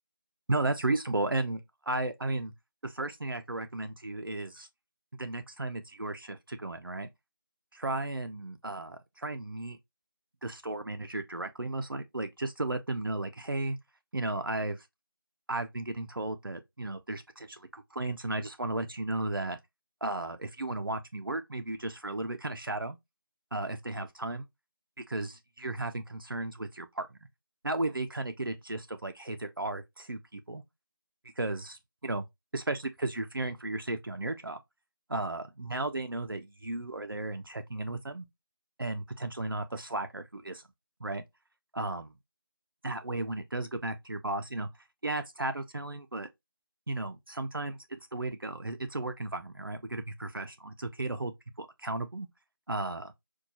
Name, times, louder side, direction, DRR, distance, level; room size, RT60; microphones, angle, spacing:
voice 1, 0.5-1.6 1.9-2.5 2.8-4.7 5.2-7.1 7.7-9.8 10.4-13.8 14.1-14.8 15.5-19.6 20.0-23.0 23.5-24.5 25.1-27.2 27.6-30.6 31.4-32.3 32.5-34.6 35.1-38.3 38.8-40.6 41.0-41.2 41.7-42.1 42.8-44.7 45.0-46.3 46.9-47.8 48.1-51.3 51.6-52.3 52.7-53.1, right 2 dB, 70° right, 0.5 m, -34 dB
4.5 x 2.3 x 2.7 m
figure-of-eight pair, 180°, 12 cm